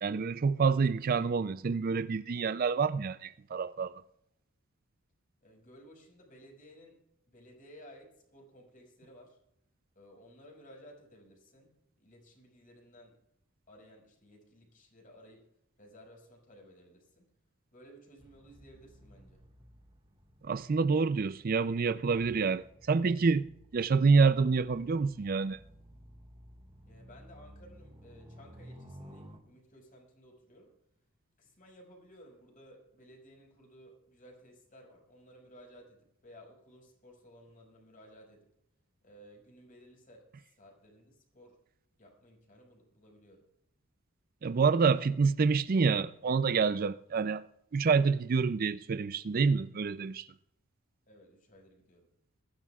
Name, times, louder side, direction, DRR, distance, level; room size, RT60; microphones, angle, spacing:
voice 1, 0.0-4.0 20.4-23.5 23.7-25.6 44.4-47.4 47.7-50.3, right 5 dB, 40° right, 0.4 m, -27 dB
voice 2, 5.4-9.4 9.9-13.2 13.7-15.5 15.8-17.3 17.7-19.4 26.8-30.7 31.4-38.5 39.0-41.6 42.0-43.5 51.1-52.1, equal, 40° left, 5.6 m, -57 dB
sound 1, 18.2-29.4, equal, 25° right, 1.7 m, -55 dB
21.5 x 15.0 x 2.4 m
head